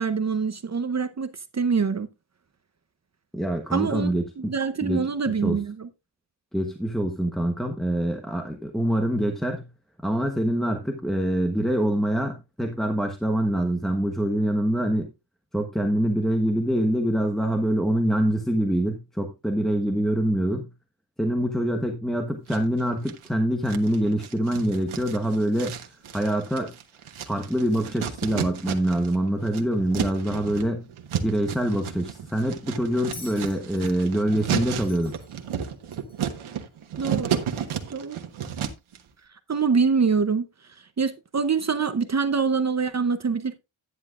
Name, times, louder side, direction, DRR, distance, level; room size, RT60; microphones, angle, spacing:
voice 1, 0.0-2.1 3.7-5.9 37.0-37.4 37.9-38.2 39.5-40.5 41.0-43.6, right 5 dB, 35° right, 0.8 m, -25 dB
voice 2, 3.3-4.5 4.8-5.6 6.5-9.7 10.0-15.1 15.5-20.7 21.2-25.8 26.1-26.7 27.3-30.9 31.2-35.2, right 1 dB, ahead, 1.1 m, -25 dB
sound 1, 22.5-23.3 23.7-29.1 29.4-39.0, right 8 dB, 80° right, 1.4 m, -32 dB
Bell, 33.1-36.3 37.5-37.6, left 3 dB, 80° left, 3.8 m, -47 dB
10.5 x 9.8 x 2.5 m
wide cardioid pair, 145°, 48 cm